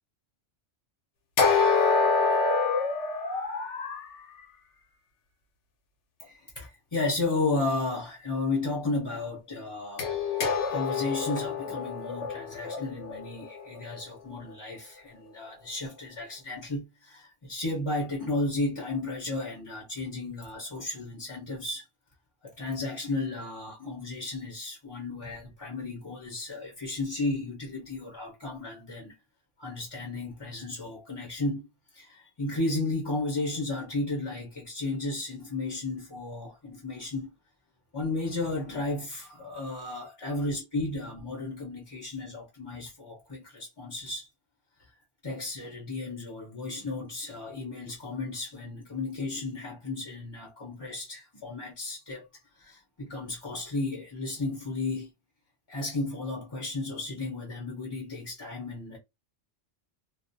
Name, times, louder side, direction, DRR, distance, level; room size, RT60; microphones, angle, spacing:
sound 1, 1.4-4.1 10.0-14.0, left 4 dB, 80° left, 1.0 m, -26 dB
voice 1, 6.2-10.1 10.7-21.8 22.4-29.1 29.6-31.7 31.9-37.3 37.9-44.3 45.2-52.3 52.6-55.1 55.7-59.0, left 2 dB, 30° left, 0.6 m, -33 dB
2.4 x 2.0 x 2.5 m
omnidirectional pair, 1.2 m